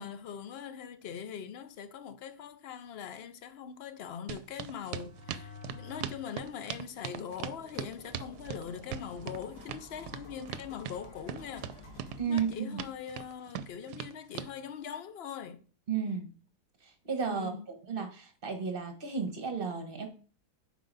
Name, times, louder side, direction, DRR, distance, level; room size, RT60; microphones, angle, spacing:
voice 1, 0.0-11.7 12.3-15.6 17.3-17.7, left 8 dB, 60° left, 0.7 m, -42 dB
sound 1, 4.3-14.5, right 10 dB, 80° right, 1.1 m, -40 dB
sound 2, 4.9-6.3 6.7-12.2, left 3 dB, 75° left, 2.3 m, -51 dB
voice 2, 12.2-12.8 15.9-16.3 16.8-17.6 17.9-20.1, right 6 dB, 35° right, 1.3 m, -33 dB
7.7 x 4.8 x 4.0 m
omnidirectional pair, 1.7 m